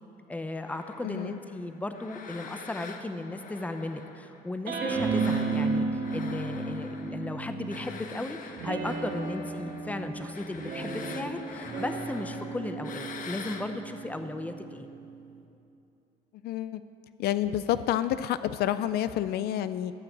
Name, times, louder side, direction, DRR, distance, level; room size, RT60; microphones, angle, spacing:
voice 1, 0.3-14.9, left 2 dB, 10° left, 8 dB, 0.7 m, -36 dB
sound 1, 0.7-4.6 5.0-13.7, left 5 dB, 55° left, 1.0 m, -45 dB
voice 2, 1.0-1.4 16.4-16.8 17.2-19.9, left 12 dB, 70° left, 13 dB, 0.4 m, -29 dB
sound 2, 4.7-8.0 8.6-15.3, right 4 dB, 65° right, 1.6 m, -33 dB
14.0 x 5.8 x 8.1 m, 2.7 s
cardioid pair, 110°, 17 cm